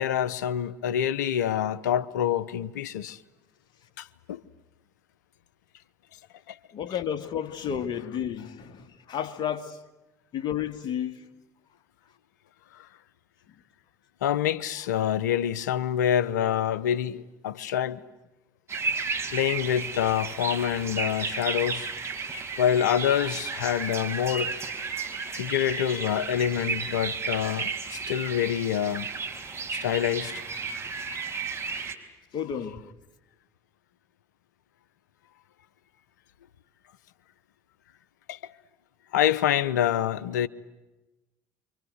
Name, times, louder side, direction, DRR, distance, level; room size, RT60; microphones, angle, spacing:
voice 1, 0.0-3.2 4.0-4.4 6.5-6.6 14.2-18.0 19.3-21.9 22.6-24.5 25.3-29.1 29.7-30.4 38.3-38.4 39.1-40.5, left 10 dB, 85° left, 0.9 m, -26 dB
voice 2, 6.7-9.8 10.3-11.3 31.7-31.8 32.3-32.9, left 9 dB, 55° left, 2.5 m, -32 dB
sound 1, 18.7-31.9, right 4 dB, 30° right, 4.8 m, -33 dB
29.0 x 25.0 x 8.1 m
hypercardioid pair, 65°, 9 cm